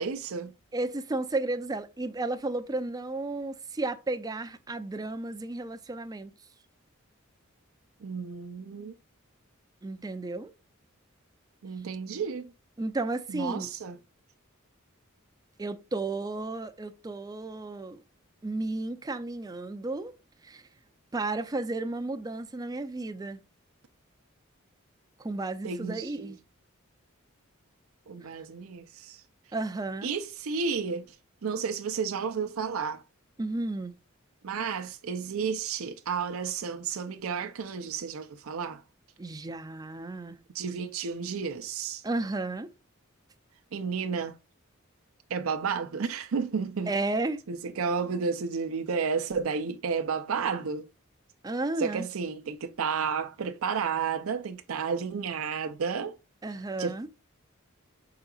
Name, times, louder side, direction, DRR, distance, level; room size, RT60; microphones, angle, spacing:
voice 1, 0.0-0.5 8.0-8.9 11.6-12.5 13.3-14.0 25.6-26.3 28.1-29.2 30.0-31.2 31.4-33.0 34.4-38.8 40.5-42.0 43.7-44.4 45.3-46.9 47.5-50.9 51.8-56.2 56.8-56.9, right 5 dB, 75° right, 0.5 m, -32 dB
voice 2, 0.7-6.3 9.8-10.5 12.8-13.7 15.6-18.0 18.4-20.1 20.4-20.6 21.1-23.4 25.2-26.4 28.2-28.3 29.5-30.1 33.4-33.9 39.2-40.4 42.0-42.7 46.9-47.4 51.4-52.1 56.4-57.1, right 2 dB, 20° right, 0.4 m, -33 dB
5.7 x 3.9 x 2.3 m
head